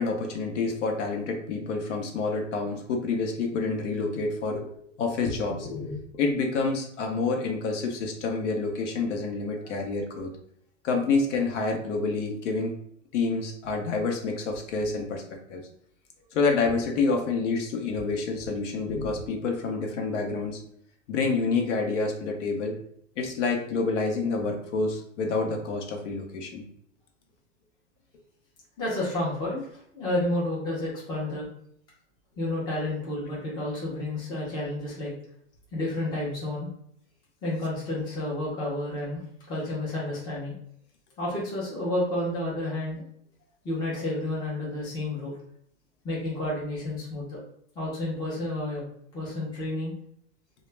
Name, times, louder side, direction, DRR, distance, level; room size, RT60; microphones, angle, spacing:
voice 1, 0.0-4.7 5.0-10.3 10.8-12.8 13.1-15.2 15.5-15.6 16.3-20.6 21.1-22.8 23.2-26.7, left 4 dB, 70° left, 3 dB, 0.7 m, -28 dB
voice 2, 9.6-10.0 28.8-31.5 32.4-35.1 35.7-36.7 37.4-39.2 39.5-40.5 41.2-43.0 43.6-45.3 46.0-47.4 47.7-48.8 49.1-49.9, left 1 dB, 10° left, -6 dB, 0.6 m, -30 dB
2.2 x 2.1 x 3.1 m, 0.68 s
supercardioid pair, 155°, 37 cm